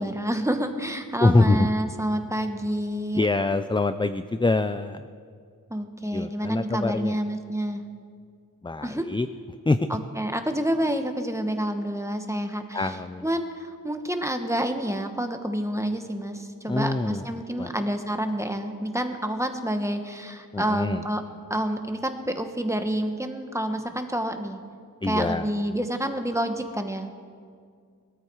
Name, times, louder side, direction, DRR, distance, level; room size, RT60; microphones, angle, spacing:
voice 1, 0.0-3.2 5.7-7.8 8.8-9.1 9.9-12.9 13.2-21.2 21.5-24.6 25.0-27.1, right 1 dB, 10° right, 6 dB, 1.2 m, -28 dB
voice 2, 1.2-1.7 3.1-5.1 6.1-7.2 8.6-9.3 9.7-9.9 12.7-13.3 16.7-17.2 17.5-17.8 20.5-21.0 25.0-25.5, left 2 dB, 15° left, 11 dB, 0.4 m, -24 dB
21.5 x 13.0 x 4.7 m, 2.2 s
wide cardioid pair, 70°, 35 cm